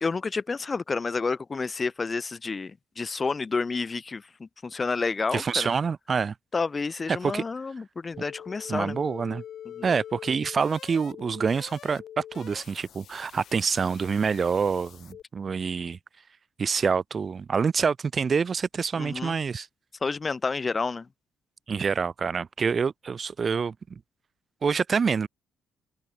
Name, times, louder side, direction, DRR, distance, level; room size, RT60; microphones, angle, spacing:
voice 1, 0.0-4.3 4.6-5.7 6.5-9.0 9.8-9.9 19.0-19.3 20.0-21.1, left 4 dB, 30° left, 0.5 m, -29 dB
voice 2, 5.3-6.3 7.1-7.4 8.7-9.4 9.8-16.0 16.6-19.7 21.7-24.0 24.6-25.3, right 5 dB, 40° right, 2.9 m, -26 dB
sound 1, 8.1-15.2, left 10 dB, 70° left, 2.5 m, -45 dB
cardioid pair, 90°, 0 cm